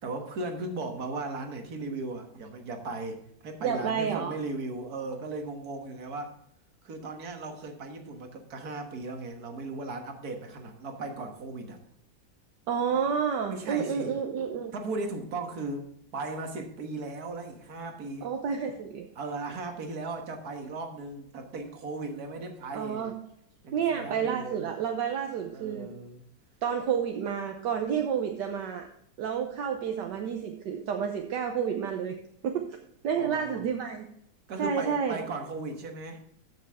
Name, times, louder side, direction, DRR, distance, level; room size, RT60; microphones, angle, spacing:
voice 1, 0.0-6.3 6.8-11.8 12.9-13.0 13.5-14.1 14.7-18.3 19.2-23.1 23.6-24.6 25.5-26.2 33.1-33.6 34.5-36.2, right 3 dB, 55° right, 5 dB, 1.9 m, -37 dB
voice 2, 3.6-4.3 12.7-14.7 18.2-19.1 22.7-23.1 23.7-25.9 26.6-28.9 29.2-32.2 32.4-32.8 33.0-34.1 34.6-35.2, right 7 dB, 75° right, 4 dB, 1.5 m, -30 dB
14.0 x 6.5 x 3.5 m, 0.74 s
omnidirectional pair, 1.9 m